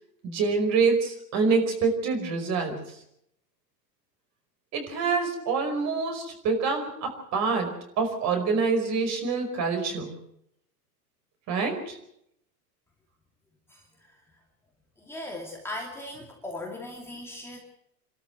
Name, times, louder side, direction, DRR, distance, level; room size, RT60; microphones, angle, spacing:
voice 1, 0.2-2.9 4.7-10.1 11.5-12.0, right 4 dB, 35° right, 5 dB, 5.1 m, -26 dB
voice 2, 13.7-14.2 15.0-17.6, left 1 dB, 5° left, -1 dB, 2.5 m, -39 dB
27.5 x 13.0 x 8.0 m, 0.75 s
supercardioid pair, 140°, 48 cm